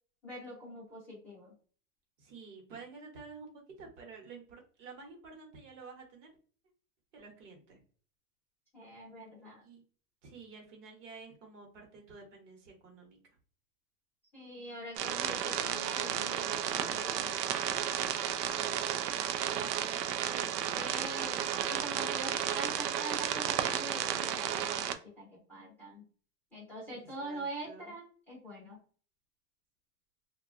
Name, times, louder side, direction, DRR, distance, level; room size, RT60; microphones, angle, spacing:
voice 1, 0.2-1.5 8.7-9.6 14.3-17.3 20.7-24.9 25.2-26.0 26.5-28.8, right 1 dB, 5° left, -9 dB, 0.7 m, -44 dB
voice 2, 2.2-6.3 7.1-7.8 9.6-9.8 10.2-13.2 18.4-21.5 26.9-28.0, right 4 dB, 50° right, 1 dB, 1.0 m, -51 dB
sound 1, 15.0-24.9, right 10 dB, 80° right, 0.5 m, -33 dB
2.7 x 2.3 x 2.4 m, 0.42 s
supercardioid pair, 165°, 47 cm